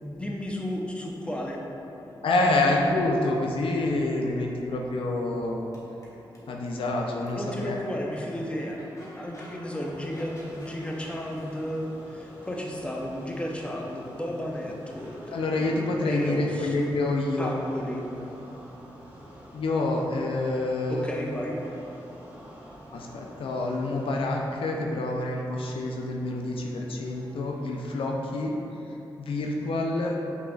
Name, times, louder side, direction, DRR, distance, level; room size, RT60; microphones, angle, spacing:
voice 1, 0.0-1.6 2.4-2.7 7.4-8.8 9.2-16.7 17.4-18.3 20.9-21.6, equal, 10° left, -2 dB, 0.7 m, -33 dB
Crowd / Race car auto racing / Accelerating revving vroom, 1.4-15.3, equal, 35° left, 1.4 m, -50 dB
voice 2, 2.2-5.7 6.5-7.8 15.3-17.5 19.5-21.1 22.9-28.5 28.9-30.2, left 2 dB, 75° left, 0 dB, 0.4 m, -27 dB
sound 1, 9.8-28.0, equal, 15° right, 1.0 m, -49 dB
5.7 x 3.8 x 2.4 m, 2.9 s
cardioid pair, 50°, 9 cm